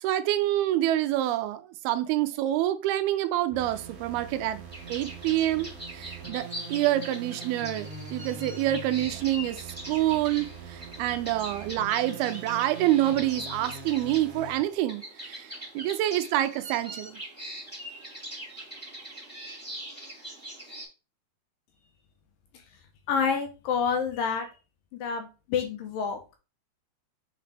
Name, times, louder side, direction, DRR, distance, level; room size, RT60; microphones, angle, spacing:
voice 1, 0.0-4.6 4.9-9.6 9.9-17.2, right 14 dB, 80° right, 2.4 m, -27 dB
sound 1, 3.5-14.6, right 4 dB, 65° right, 1.4 m, -43 dB
sound 2, 4.7-20.8, right 1 dB, 5° left, 1.9 m, -42 dB
voice 2, 23.1-24.5 24.9-26.2, left 6 dB, 75° left, 2.2 m, -28 dB
6.9 x 4.1 x 3.3 m
omnidirectional pair, 4.5 m